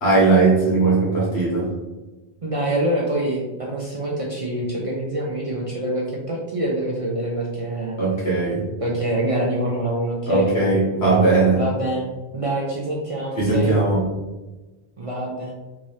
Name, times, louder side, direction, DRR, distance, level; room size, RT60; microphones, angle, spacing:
voice 1, 0.0-1.7 8.0-8.6 10.3-11.6 13.4-14.1, right 3 dB, 75° left, -4 dB, 1.5 m, -18 dB
voice 2, 2.4-8.0 8.8-10.5 11.5-12.0 12.3-13.8 15.0-15.5, right 1 dB, 45° right, -3 dB, 0.5 m, -25 dB
3.6 x 2.7 x 3.1 m, 1.1 s
omnidirectional pair, 1.1 m